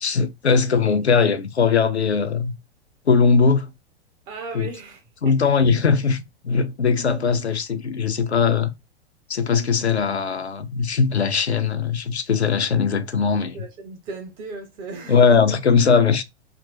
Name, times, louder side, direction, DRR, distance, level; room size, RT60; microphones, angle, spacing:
voice 1, 0.0-2.5 3.1-3.7 4.5-4.7 5.2-8.7 9.3-13.6 15.1-16.2, left 5 dB, 80° left, 0.6 m, -20 dB
voice 2, 4.3-5.5 13.5-15.6, right 4 dB, 15° right, 0.3 m, -37 dB
2.7 x 2.5 x 3.1 m
figure-of-eight pair, 95°, 32 cm